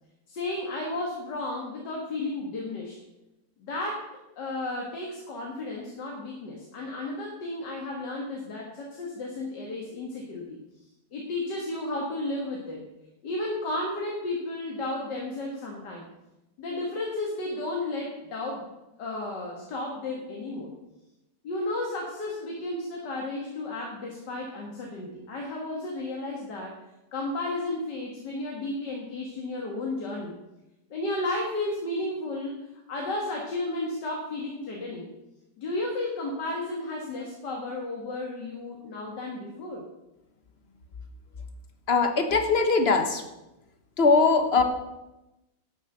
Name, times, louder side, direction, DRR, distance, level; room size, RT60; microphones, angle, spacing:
voice 1, 0.3-2.9 3.6-4.1 4.4-10.6 11.1-12.8 13.2-16.0 16.6-18.7 19.0-20.7 21.4-26.7 27.1-30.3 30.9-32.6 32.9-35.1 35.6-39.8, left 2 dB, 80° left, -1 dB, 2.3 m, -33 dB
voice 2, 41.9-43.2 44.0-44.6, left 4 dB, 40° left, 6 dB, 1.4 m, -21 dB
11.5 x 7.5 x 7.9 m, 0.98 s
omnidirectional pair, 1.8 m